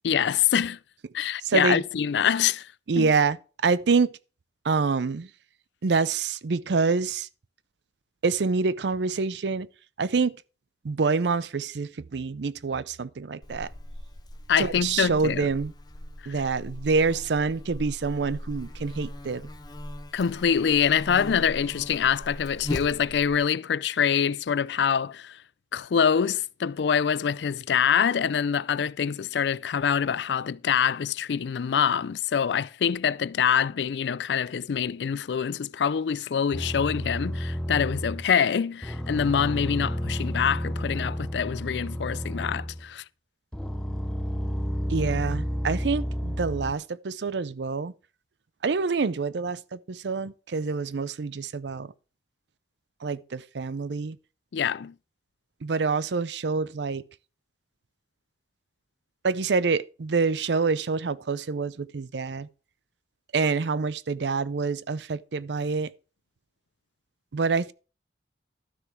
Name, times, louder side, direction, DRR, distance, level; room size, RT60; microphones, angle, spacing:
voice 1, 0.0-0.8 1.1-2.7 3.0-3.1 14.5-15.5 20.1-25.4 25.7-43.0 54.5-54.9, left 7 dB, 75° left, 0.4 m, -25 dB
voice 2, 1.4-1.8 2.9-3.4 3.6-4.1 4.6-5.3 5.8-7.3 8.2-9.7 10.0-10.4 10.8-13.7 14.6-15.7 16.3-19.5 44.9-47.9 48.6-51.9 53.0-54.2 55.6-57.0 59.2-62.5 63.3-65.9 67.3-67.7, right 4 dB, 75° right, 0.5 m, -26 dB
Buzz, 13.4-23.4, left 1 dB, 25° left, 1.0 m, -39 dB
sound 1, 36.5-38.3 38.8-42.9 43.5-46.7, equal, 5° left, 0.6 m, -31 dB
12.5 x 6.6 x 4.6 m
head